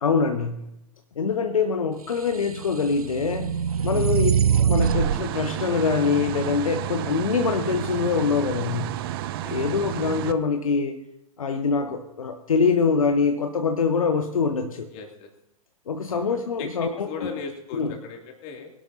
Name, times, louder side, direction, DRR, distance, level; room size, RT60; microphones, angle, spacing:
voice 1, 0.0-0.6 1.2-3.6 3.8-4.3 4.6-8.9 9.5-11.0 11.4-14.9 15.9-17.3 17.7-17.9, left 5 dB, 65° left, 6 dB, 1.1 m, -24 dB
sound 1, 2.3-5.2, right 8 dB, 75° right, 0.4 m, -23 dB
sound 2, 4.8-10.3, right 14 dB, 40° right, 0.7 m, -31 dB
voice 2, 14.9-15.3 16.1-18.7, left 4 dB, 35° left, 1 dB, 2.8 m, -38 dB
21.5 x 11.5 x 2.9 m, 0.82 s
figure-of-eight pair, 105°, 19 cm